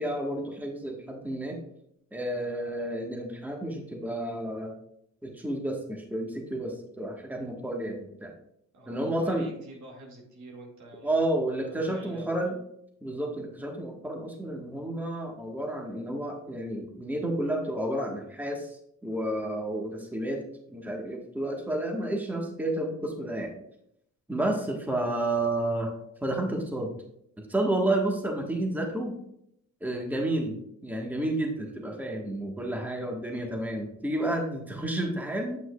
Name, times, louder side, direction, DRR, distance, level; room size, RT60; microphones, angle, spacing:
voice 1, 0.0-1.6 2.1-4.8 5.2-8.3 8.9-9.5 11.0-12.6 13.0-20.4 20.7-23.5 24.3-25.9 26.2-26.9 27.4-29.2 29.8-30.6 30.8-35.6, right 1 dB, 5° right, 1 dB, 1.3 m, -31 dB
voice 2, 8.7-11.3 11.6-12.4, right 2 dB, 70° right, 0 dB, 2.0 m, -47 dB
8.3 x 5.9 x 2.3 m, 0.74 s
cardioid pair, 90°, 30 cm